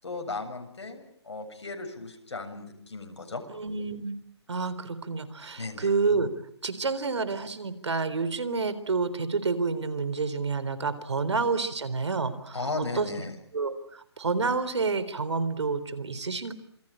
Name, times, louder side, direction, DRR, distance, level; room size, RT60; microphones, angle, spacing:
voice 1, 0.0-3.4 5.6-5.9 11.2-11.4 12.5-13.3, left 3 dB, 80° left, 5 dB, 7.5 m, -36 dB
voice 2, 3.5-4.2 4.5-6.3 6.6-12.7 12.9-13.1 13.5-16.5, right 4 dB, 75° right, 15 dB, 3.8 m, -29 dB
27.5 x 22.5 x 8.9 m, 0.69 s
hypercardioid pair, 150°, 15 cm